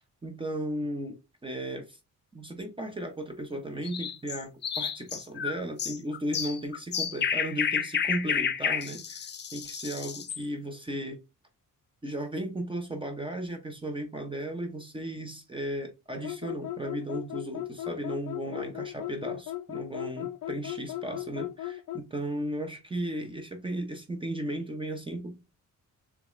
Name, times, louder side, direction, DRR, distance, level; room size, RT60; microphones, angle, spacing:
voice 1, 0.2-1.2 1.4-2.0 2.3-11.2 12.0-25.4, right 1 dB, 15° right, 0.7 m, -35 dB
sound 1, 3.8-10.4, left 7 dB, 35° left, 0.5 m, -31 dB
sound 2, 16.2-22.1, left 14 dB, 80° left, 0.6 m, -37 dB
6.8 x 2.4 x 3.1 m
wide cardioid pair, 150°, 32 cm